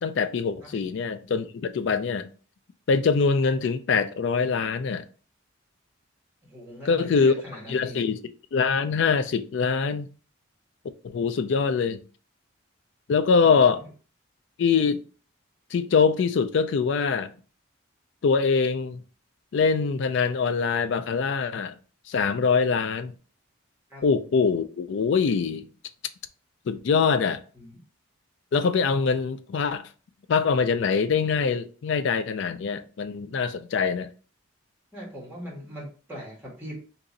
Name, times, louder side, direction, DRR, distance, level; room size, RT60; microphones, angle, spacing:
voice 1, 0.0-2.3 2.9-5.0 6.9-7.3 7.7-8.2 8.5-10.1 11.0-12.0 13.1-13.8 14.6-15.0 15.7-17.3 18.2-19.0 19.5-21.7 22.1-23.1 24.0-25.6 26.7-27.4 28.5-29.8 30.3-34.1, left 5 dB, 60° left, 0.3 m, -23 dB
voice 2, 6.4-8.0 13.4-13.6 23.9-24.0 27.5-27.8 34.9-36.8, equal, 10° right, 1.4 m, -40 dB
2.9 x 2.6 x 3.8 m
head